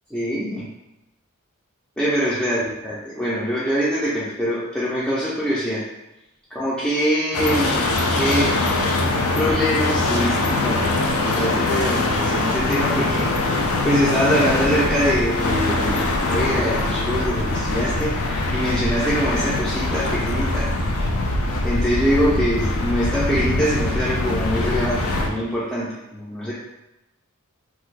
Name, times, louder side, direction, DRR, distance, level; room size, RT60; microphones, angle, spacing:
voice 1, 0.1-0.7 2.0-5.9 6.5-8.6 9.4-20.7 21.6-26.5, equal, 5° left, -9 dB, 0.4 m, -24 dB
sound 1, 7.3-25.3, left 2 dB, 85° left, 0.4 m, -22 dB
2.7 x 2.4 x 3.2 m, 0.93 s
head